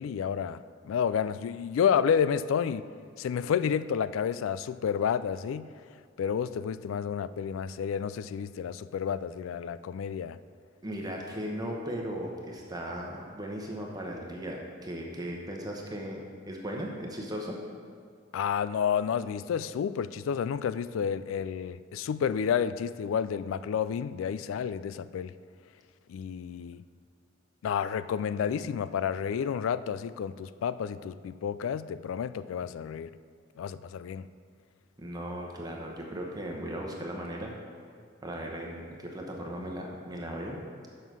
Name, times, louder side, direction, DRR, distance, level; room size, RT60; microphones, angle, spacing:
voice 1, 0.0-2.9 3.2-5.7 6.2-10.4 18.3-25.3 26.1-26.8 27.6-33.1 33.6-34.3, left 7 dB, 90° left, 16 dB, 0.3 m, -30 dB
voice 2, 10.8-17.6 35.0-37.5 38.2-40.6, equal, 20° right, 0 dB, 0.9 m, -37 dB
7.2 x 5.7 x 6.2 m, 2.1 s
head